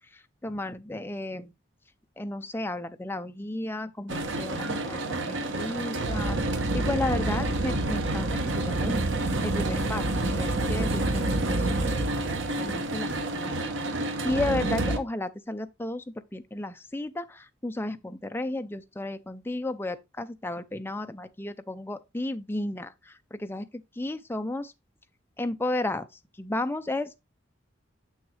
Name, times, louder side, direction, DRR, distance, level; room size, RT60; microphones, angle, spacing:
voice 1, 0.4-1.5 2.2-6.4 6.7-8.3 8.6-9.0 9.4-11.6 11.9-12.0 12.3-13.5 14.2-16.0 16.3-24.7 25.4-26.1 26.4-27.3, left 2 dB, 10° left, 0.5 m, -33 dB
sound 1, 4.1-15.0, right 2 dB, 80° right, 1.1 m, -28 dB
7.0 x 6.4 x 3.2 m
head